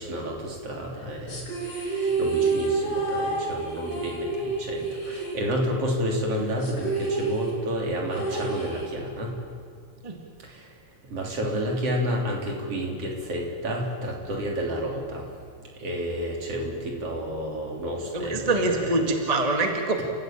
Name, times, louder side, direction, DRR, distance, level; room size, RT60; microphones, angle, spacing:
voice 1, 0.0-1.4 1.7-9.3 11.1-15.2 15.8-19.0, equal, 45° right, 0 dB, 4.2 m, -30 dB
sound 1, 1.3-6.0 6.2-6.3 6.6-9.3, right 3 dB, 75° left, 6.6 m, -29 dB
voice 2, 18.1-20.0, right 2 dB, 15° right, 3 dB, 1.4 m, -24 dB
29.5 x 14.5 x 8.9 m, 2.1 s
omnidirectional pair, 3.7 m